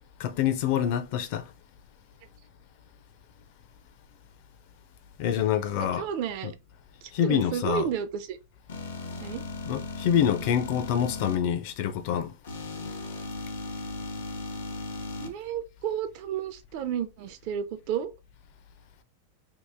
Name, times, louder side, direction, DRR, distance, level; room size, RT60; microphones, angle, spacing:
voice 1, 0.2-1.5 5.2-6.1 7.1-7.9 9.7-12.3, left 9 dB, 50° left, 0.5 m, -26 dB
voice 2, 5.8-6.5 7.0-8.4 9.2-9.4 15.2-18.1, right 9 dB, 50° right, 0.5 m, -32 dB
sound 1, 8.7-11.4 12.4-15.3, left 3 dB, 85° left, 0.9 m, -37 dB
3.0 x 2.4 x 3.5 m
supercardioid pair, 145°, 0 cm